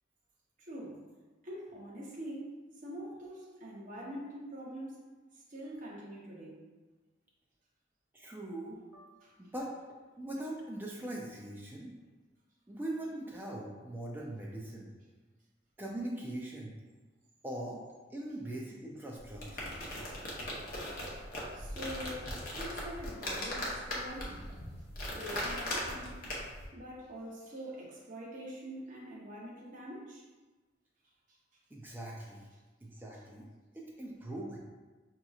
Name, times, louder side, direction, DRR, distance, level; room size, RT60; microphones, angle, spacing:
voice 1, 0.6-1.0 1.4-5.0 5.5-6.6 9.2-9.3 21.1-21.2 21.5-24.4 25.1-26.1 26.7-30.2, equal, 40° right, -4 dB, 0.8 m, -44 dB
voice 2, 8.1-9.1 9.4-9.7 10.2-11.9 12.7-14.9 15.8-16.7 17.4-17.8 18.1-19.7 31.7-32.5 32.8-33.5 33.7-34.6, right 1 dB, 10° right, -3 dB, 0.4 m, -41 dB
sound 1, 19.2-26.7, left 1 dB, 45° left, 0.8 m, -39 dB
5.0 x 2.9 x 2.3 m, 1.3 s
head